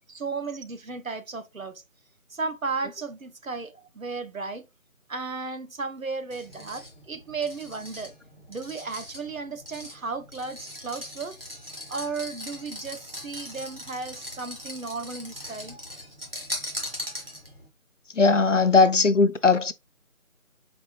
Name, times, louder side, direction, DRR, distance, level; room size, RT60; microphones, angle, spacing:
voice 1, 0.1-1.8 2.3-4.7 5.1-8.1 8.5-11.3 11.9-15.8, right 4 dB, 70° right, 0.8 m, -34 dB
sound 1, 6.3-17.7, left 1 dB, 45° right, 1.0 m, -40 dB
voice 2, 18.2-19.7, left 4 dB, 60° left, 0.5 m, -19 dB
4.3 x 4.2 x 2.4 m
figure-of-eight pair, 180°, 42 cm